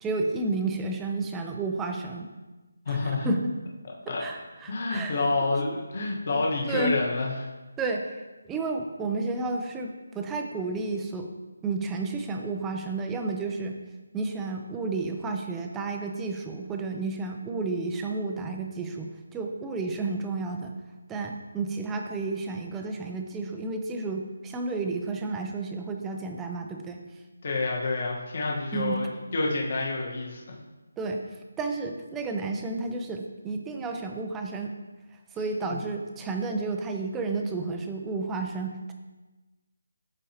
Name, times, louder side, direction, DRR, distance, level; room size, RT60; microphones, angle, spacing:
voice 1, 0.0-2.3 2.9-3.5 4.2-5.2 6.7-6.9 7.8-8.2 8.5-11.3 11.6-13.8 14.1-20.8 21.1-27.0 28.7-29.0 31.0-31.2 31.6-34.7 35.3-38.9, right 3 dB, 5° right, 3 dB, 0.3 m, -31 dB
voice 2, 2.8-3.3 4.1-4.2 4.7-7.5 27.4-30.5, left 3 dB, 35° left, -2 dB, 1.2 m, -28 dB
12.0 x 4.2 x 2.8 m, 1.2 s
figure-of-eight pair, 175°, 0 cm